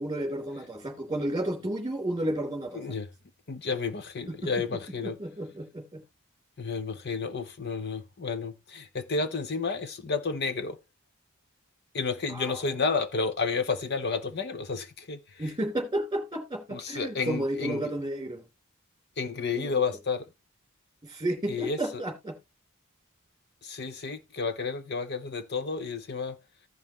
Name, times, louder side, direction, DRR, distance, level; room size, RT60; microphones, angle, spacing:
voice 1, 0.0-2.8 4.3-4.5 5.0-6.0 12.3-12.8 15.4-18.4 19.5-19.8 21.0-22.4, right 1 dB, 15° right, 3.0 m, -32 dB
voice 2, 2.7-3.1 3.5-5.2 6.6-10.8 11.9-15.5 16.7-17.9 19.2-20.3 21.5-22.0 23.6-26.4, left 4 dB, 50° left, 0.7 m, -31 dB
15.5 x 5.5 x 3.0 m
head